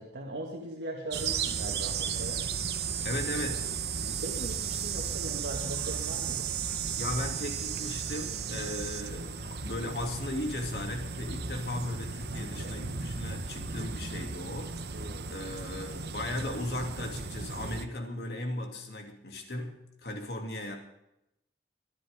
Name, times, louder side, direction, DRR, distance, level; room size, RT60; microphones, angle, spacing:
voice 1, 0.0-2.5 3.9-6.5 8.5-8.7 12.3-12.8 14.9-15.3, right 1 dB, 90° right, -2 dB, 2.1 m, -40 dB
sound 1, 1.1-17.8, right 6 dB, 65° right, 1.0 m, -35 dB
voice 2, 3.0-3.7 7.0-14.9 15.3-20.8, left 1 dB, 60° left, 3 dB, 2.8 m, -36 dB
23.0 x 10.5 x 3.7 m, 0.85 s
head